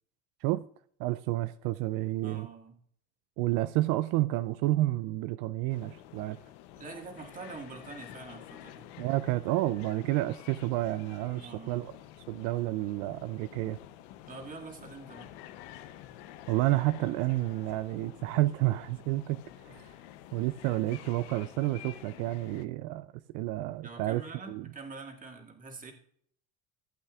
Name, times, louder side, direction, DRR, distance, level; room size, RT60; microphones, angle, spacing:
voice 1, 1.0-2.5 3.4-6.4 9.0-11.9 12.3-13.8 16.5-19.4 19.7-19.9 20.3-24.2 24.5-24.7, right 17 dB, 75° right, 0.5 m, -30 dB
voice 2, 2.2-2.7 6.8-8.9 11.3-11.9 14.3-15.3 23.8-25.9, right 4 dB, 25° right, 1.9 m, -45 dB
sound 1, 5.7-22.7, left 13 dB, 85° left, 0.8 m, -49 dB
15.5 x 8.2 x 2.4 m
cardioid pair, 125°, 32 cm